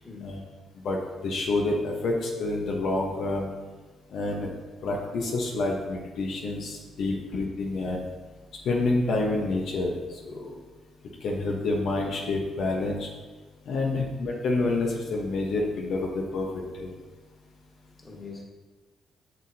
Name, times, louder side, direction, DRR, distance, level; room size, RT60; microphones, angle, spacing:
voice 1, 0.0-0.4 7.0-7.2 13.9-14.0 18.0-18.4, left 4 dB, 20° left, -1 dB, 1.7 m, -42 dB
voice 2, 0.8-3.5 4.1-4.5 4.8-8.1 8.6-10.5 11.2-13.1 13.6-16.9, left 2 dB, 70° left, -1 dB, 1.2 m, -28 dB
8.1 x 6.6 x 2.9 m, 1.3 s
cardioid pair, 90°, 0 cm